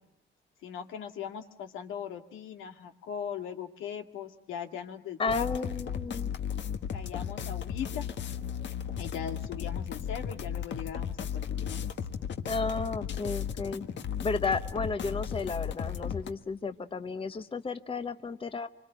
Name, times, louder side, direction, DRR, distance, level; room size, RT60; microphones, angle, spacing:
voice 1, 0.6-5.6 6.9-8.1 9.0-11.9, left 8 dB, 85° left, 5 dB, 2.1 m, -39 dB
voice 2, 5.2-6.3 12.5-13.8 14.2-18.7, left 4 dB, 25° left, 10 dB, 1.0 m, -33 dB
sound 1, 5.3-16.3, left 8 dB, 65° left, 1.6 m, -35 dB
25.5 x 25.5 x 9.0 m, 0.76 s
cardioid pair, 90°, 20 cm